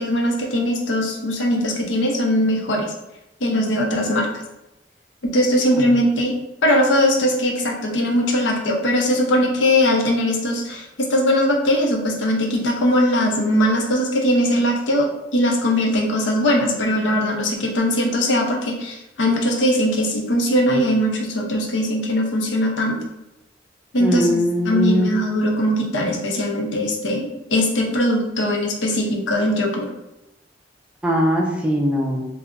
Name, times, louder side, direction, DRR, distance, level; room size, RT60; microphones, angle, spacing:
voice 1, 0.0-2.9 3.4-4.3 5.2-6.3 6.6-15.1 15.3-23.0 23.9-29.9, left 1 dB, 80° left, 0 dB, 0.6 m, -20 dB
voice 2, 24.0-25.1 31.0-32.3, equal, 5° right, -2 dB, 0.4 m, -20 dB
2.4 x 2.0 x 3.5 m, 0.93 s
head